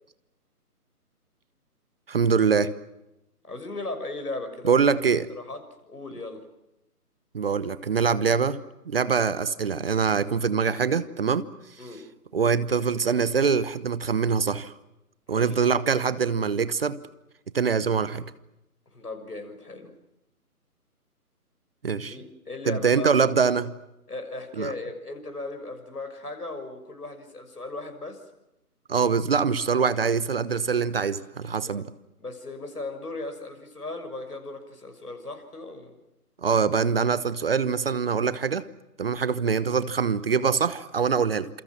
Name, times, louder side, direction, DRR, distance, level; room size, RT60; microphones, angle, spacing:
voice 1, 2.1-2.7 4.7-5.3 7.3-8.6 8.9-11.5 12.3-14.7 15.3-17.0 17.5-18.3 21.8-22.2 22.7-23.7 24.6-24.7 28.9-31.8 36.4-38.6 39.0-41.5, right 6 dB, 40° right, 16 dB, 1.1 m, -24 dB
voice 2, 3.4-4.9 5.3-6.5 11.8-12.1 15.3-15.6 18.9-19.9 22.1-23.2 24.1-28.2 31.7-31.8 32.2-36.0, left 2 dB, 75° left, 7 dB, 6.6 m, -37 dB
29.0 x 28.0 x 6.2 m, 0.91 s
figure-of-eight pair, 145°, 47 cm